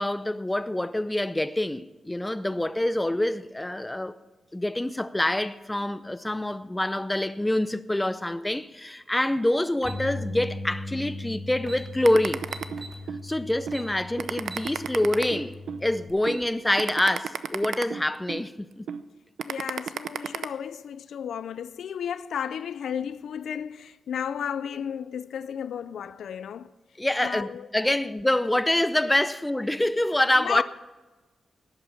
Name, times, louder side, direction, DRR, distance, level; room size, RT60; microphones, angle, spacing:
voice 1, 0.0-4.2 4.5-12.5 13.2-18.9 27.0-30.6, left 1 dB, 10° left, 0.5 m, -26 dB
Bass guitar, 9.8-16.1, left 2 dB, 10° right, 5.2 m, -38 dB
sound 1, 9.8-10.0 11.2-11.3 11.6-11.8 12.5-13.0 13.7-13.9 14.4-14.7 15.1-15.2 16.0-16.4, right 3 dB, 30° right, 2.5 m, -41 dB
sound 2, 12.1-13.2 13.7-13.8 14.2-15.8 16.3-16.4 16.8-18.4 18.9-19.0 19.4-20.5, right 8 dB, 90° right, 0.6 m, -32 dB
voice 2, 19.5-26.7 27.2-27.7 30.4-30.6, left 8 dB, 90° left, 0.4 m, -33 dB
18.5 x 8.4 x 5.8 m
wide cardioid pair, 150°, 0 cm